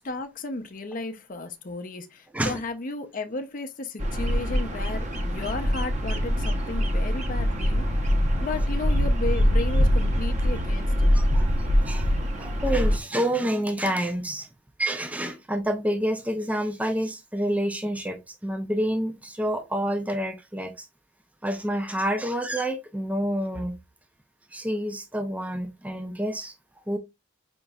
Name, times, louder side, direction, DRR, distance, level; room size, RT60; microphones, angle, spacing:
voice 1, 0.0-11.1, left 2 dB, 40° left, 0.6 m, -34 dB
Bird vocalization bird call bird song, 4.0-13.0, equal, 35° right, 0.8 m, -23 dB
voice 2, 11.1-11.5 11.9-12.1 12.4-14.5 14.8-20.9 21.4-23.8 24.5-26.5 26.9-27.0, right 1 dB, 5° right, 0.4 m, -28 dB
5.2 x 2.9 x 2.3 m
head